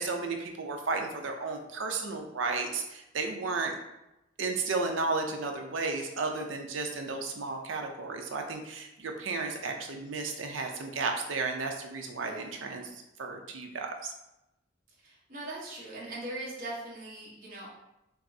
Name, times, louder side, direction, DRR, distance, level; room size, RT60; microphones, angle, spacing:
voice 1, 0.0-3.8 4.4-12.8 13.2-14.1, right 3 dB, 90° right, 3 dB, 0.5 m, -33 dB
voice 2, 12.2-12.5 15.0-17.7, right 2 dB, 50° right, -6 dB, 1.0 m, -40 dB
5.7 x 2.0 x 2.6 m, 0.92 s
head